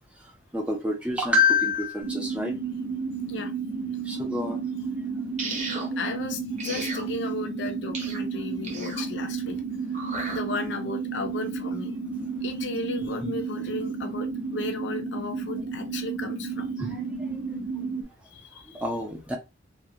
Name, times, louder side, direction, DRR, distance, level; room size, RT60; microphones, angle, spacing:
voice 1, 0.5-2.5 4.1-4.6 16.8-17.0 18.8-19.4, left 3 dB, 5° right, 0.4 m, -26 dB
sound 1, 2.0-18.0, right 4 dB, 75° right, 0.6 m, -32 dB
sound 2, 5.4-5.9 6.6-7.1 7.9-8.2 8.6-9.0 9.9-10.4, right 3 dB, 40° right, 0.7 m, -34 dB
voice 2, 6.0-9.6 10.3-12.0 12.4-16.7 18.3-18.8, left 3 dB, 65° left, 0.5 m, -35 dB
2.4 x 2.2 x 2.7 m
head